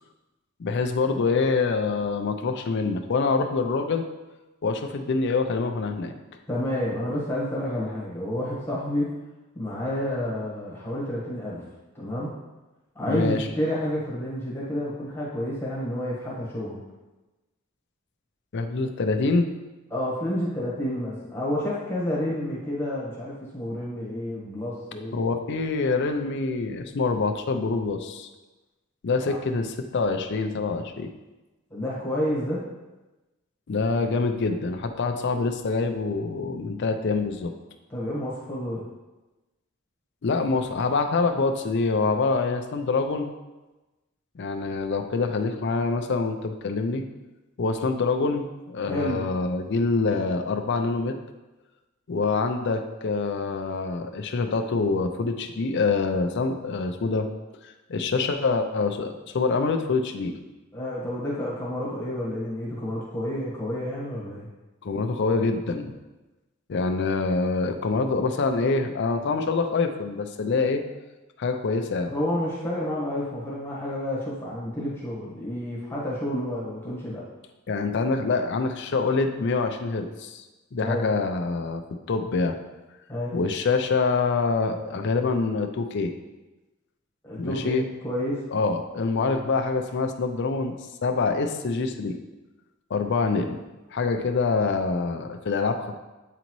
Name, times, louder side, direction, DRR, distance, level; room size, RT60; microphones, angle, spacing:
voice 1, 0.6-4.0 4.6-6.1 13.1-13.5 18.5-19.5 25.1-28.3 29.0-31.1 33.7-37.5 40.2-43.3 44.4-47.0 47.6-51.1 52.1-57.3 57.9-60.3 64.8-65.9 66.7-70.8 71.4-72.1 77.7-80.4 80.7-81.8 82.1-82.6 83.3-86.1 87.4-87.9 88.5-90.7 91.0-92.2 92.9-93.6 93.9-96.0, left 4 dB, 55° left, 6 dB, 0.5 m, -25 dB
voice 2, 6.5-9.1 9.5-11.6 11.9-12.3 12.9-16.8 19.9-25.2 29.2-29.4 31.7-32.6 37.9-38.8 48.8-49.2 60.7-64.5 72.1-77.3 80.8-81.0 83.1-83.3 87.2-88.4, left 1 dB, 10° left, -6 dB, 1.2 m, -29 dB
8.2 x 3.9 x 3.0 m, 1.1 s
head